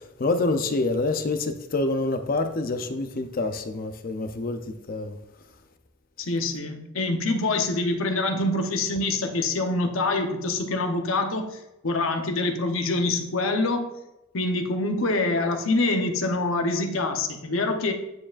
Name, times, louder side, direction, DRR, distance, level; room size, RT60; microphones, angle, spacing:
voice 1, 0.0-5.2, left 2 dB, 45° left, 0.5 m, -27 dB
voice 2, 6.2-13.9 14.3-17.9, left 2 dB, 80° left, 0.8 m, -25 dB
9.6 x 4.8 x 2.5 m
head